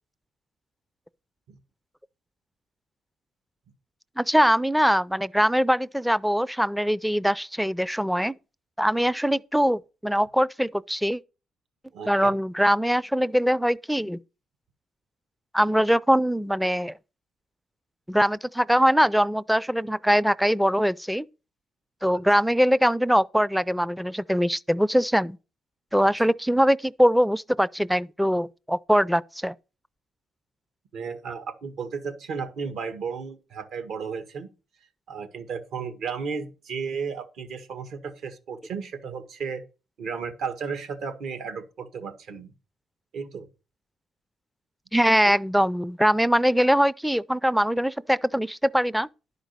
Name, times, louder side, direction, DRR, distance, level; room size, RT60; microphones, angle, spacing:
voice 1, 4.2-8.4 8.8-11.2 12.1-14.2 15.5-16.9 18.1-21.3 22.0-25.4 25.9-29.5 44.9-49.1, equal, ahead, 0.4 m, -22 dB
voice 2, 11.9-12.3 30.9-34.5 35.1-39.6 40.0-42.5 43.1-43.5, right 5 dB, 75° right, 1.7 m, -34 dB
11.0 x 5.1 x 6.6 m
cardioid pair, 90°, 0 cm